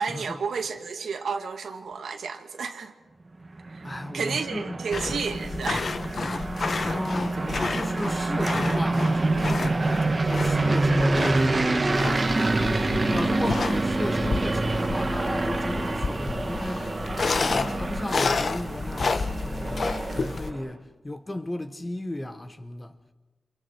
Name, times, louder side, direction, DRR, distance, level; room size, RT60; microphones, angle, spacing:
voice 1, 0.0-2.9 4.1-5.9, right 5 dB, 85° right, 2.2 m, -31 dB
sound 1, 3.5-20.6, right 2 dB, 30° right, 1.6 m, -27 dB
voice 2, 3.8-4.7 5.0-5.1 6.8-12.4 13.0-17.1 17.4-22.9, left 1 dB, 20° left, 1.4 m, -35 dB
sound 2, 4.9-20.5, left 4 dB, 50° left, 1.0 m, -31 dB
29.5 x 27.0 x 4.8 m
wide cardioid pair, 120°, 0 cm